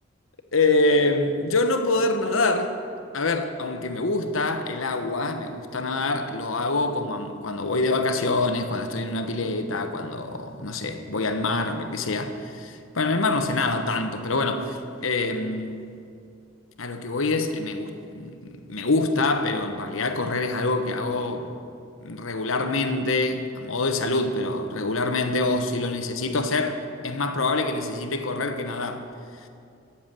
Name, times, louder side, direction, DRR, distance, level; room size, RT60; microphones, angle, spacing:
voice 1, 0.5-2.7 3.1-15.8 16.8-21.5 22.0-29.1, left 2 dB, 85° left, 1.1 m, -25 dB
16.5 x 7.2 x 7.6 m
head